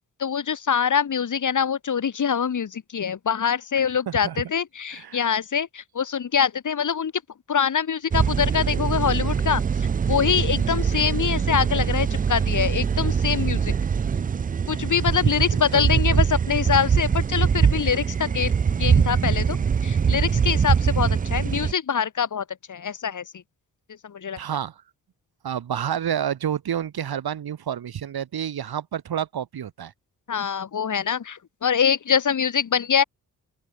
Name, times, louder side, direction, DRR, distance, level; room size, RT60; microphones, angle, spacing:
voice 1, 0.2-7.1 7.5-9.6 10.1-13.7 14.7-18.5 18.8-19.6 19.8-23.2 24.0-24.4 30.3-33.0, left 7 dB, 45° left, 1.7 m, -24 dB
voice 2, 4.1-4.4 4.9-5.3 15.5-16.2 24.4-24.8 25.4-29.9, right 9 dB, 65° right, 2.5 m, -29 dB
sound 1, 8.1-21.7, right 6 dB, 20° right, 0.4 m, -23 dB
open air
hypercardioid pair, 40°, 40 cm